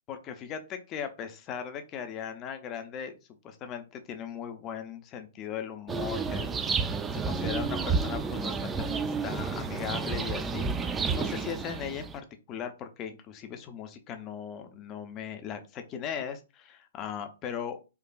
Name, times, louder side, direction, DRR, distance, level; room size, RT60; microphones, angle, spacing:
voice 1, 0.1-3.2 3.4-17.8, left 8 dB, 30° left, 7 dB, 0.6 m, -38 dB
sound 1, 5.9-12.2, right 5 dB, 15° right, 0.3 m, -31 dB
4.6 x 2.4 x 2.3 m, 0.30 s
figure-of-eight pair, 120°, 0 cm